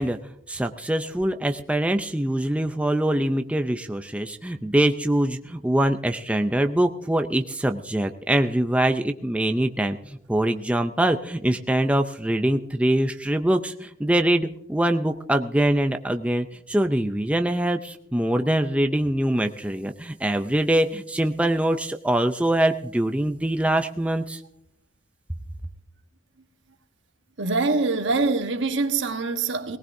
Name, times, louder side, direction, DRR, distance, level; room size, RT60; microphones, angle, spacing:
voice 1, 0.0-24.4, right 1 dB, 5° right, 0.5 m, -23 dB
voice 2, 27.4-29.8, right 3 dB, 70° right, 1.2 m, -24 dB
19.0 x 18.5 x 2.6 m
head